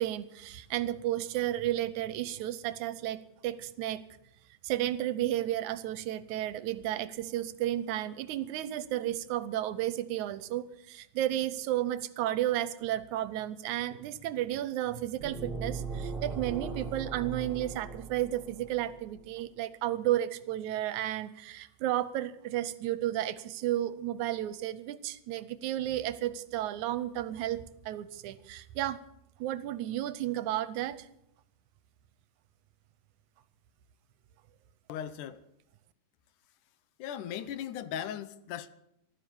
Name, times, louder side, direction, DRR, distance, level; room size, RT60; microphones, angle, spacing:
voice 1, 0.0-4.0 4.6-29.0 29.4-31.1, right 13 dB, 80° right, 2.1 m, -33 dB
sound 1, 15.2-18.9, right 4 dB, 25° right, 1.3 m, -39 dB
voice 2, 34.9-35.4 37.0-38.7, left 10 dB, 85° left, 2.3 m, -38 dB
15.0 x 12.5 x 7.1 m
omnidirectional pair, 3.5 m